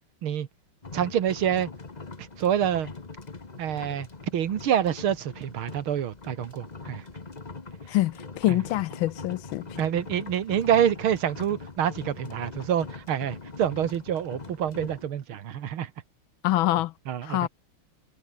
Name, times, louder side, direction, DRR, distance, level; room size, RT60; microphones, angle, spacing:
sound 1, 0.8-15.1, left 3 dB, 25° left, 1.3 m, -42 dB
voice 1, 0.9-1.7 2.2-2.9 3.6-4.1 4.3-7.0 9.8-15.9 17.1-17.5, right 9 dB, 75° right, 2.2 m, -27 dB
voice 2, 7.9-9.7 16.4-16.9 17.2-17.5, left 16 dB, 75° left, 1.3 m, -25 dB
omnidirectional pair, 2.4 m